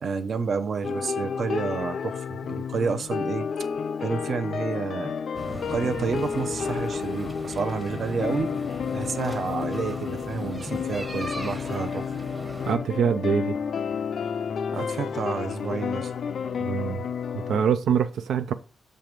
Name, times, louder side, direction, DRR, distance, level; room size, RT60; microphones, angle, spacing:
voice 1, 0.0-3.5 4.0-5.1 5.7-8.5 8.9-12.1 14.7-16.1, right 5 dB, 45° right, 0.7 m, -30 dB
sound 1, 0.8-17.6, left 6 dB, 55° left, 0.3 m, -31 dB
sound 2, 5.3-12.8, right 1 dB, 10° right, 1.1 m, -38 dB
voice 2, 12.7-13.6 16.6-17.0 17.5-18.5, right 7 dB, 85° right, 0.5 m, -24 dB
7.6 x 3.3 x 5.1 m
wide cardioid pair, 165°, 0 cm